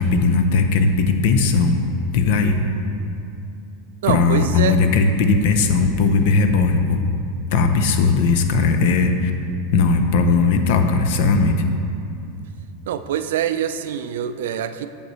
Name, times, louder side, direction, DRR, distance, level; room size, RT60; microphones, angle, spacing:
voice 1, 0.0-1.8 2.1-2.6 4.1-7.0 7.5-9.3 9.7-11.6, left 4 dB, 60° left, 7 dB, 0.6 m, -18 dB
voice 2, 4.0-4.8 12.9-14.9, right 9 dB, 80° right, 11 dB, 0.3 m, -24 dB
7.9 x 6.7 x 3.1 m, 2.6 s
supercardioid pair, 160°, 0 cm